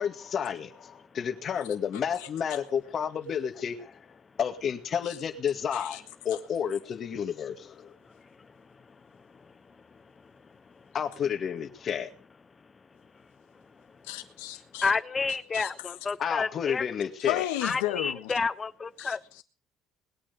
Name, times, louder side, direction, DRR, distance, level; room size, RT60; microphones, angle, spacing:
voice 1, 0.0-4.0 4.4-7.9 10.9-12.1 16.2-17.5, left 8 dB, 50° left, 2.1 m, -31 dB
voice 2, 14.0-14.9 15.5-15.7 17.2-18.3 19.0-19.4, left 14 dB, 85° left, 1.4 m, -33 dB
voice 3, 14.8-16.9 17.6-19.2, left 4 dB, 30° left, 0.6 m, -30 dB
20.5 x 8.7 x 5.3 m
hypercardioid pair, 65°, 0 cm